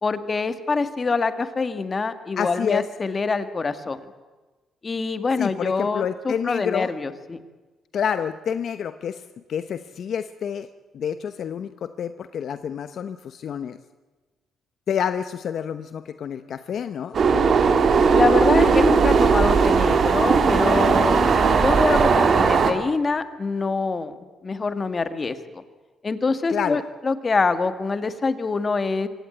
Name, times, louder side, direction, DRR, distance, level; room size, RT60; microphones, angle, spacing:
voice 1, 0.0-4.0 4.8-7.4 18.1-24.1 24.4-25.6 26.0-29.1, left 4 dB, 30° left, 10 dB, 1.8 m, -25 dB
voice 2, 2.4-2.8 5.4-6.9 7.9-9.2 9.5-10.7 10.9-13.8 14.9-17.2 26.5-26.8, left 8 dB, 60° left, 11 dB, 0.9 m, -28 dB
sound 1, 17.1-22.7, right 5 dB, 50° right, 2.3 m, -18 dB
24.0 x 17.5 x 9.2 m, 1.3 s
cardioid pair, 90°, 0 cm